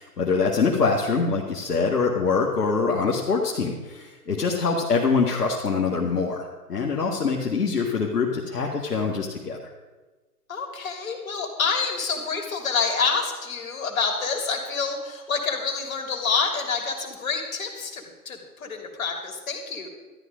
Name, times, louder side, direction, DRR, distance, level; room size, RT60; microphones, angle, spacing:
voice 1, 0.0-9.6, left 4 dB, 75° left, -2 dB, 1.9 m, -24 dB
voice 2, 10.5-19.9, left 5 dB, 55° left, 2 dB, 3.2 m, -27 dB
13.0 x 11.5 x 5.1 m, 1.2 s
figure-of-eight pair, 135°, 48 cm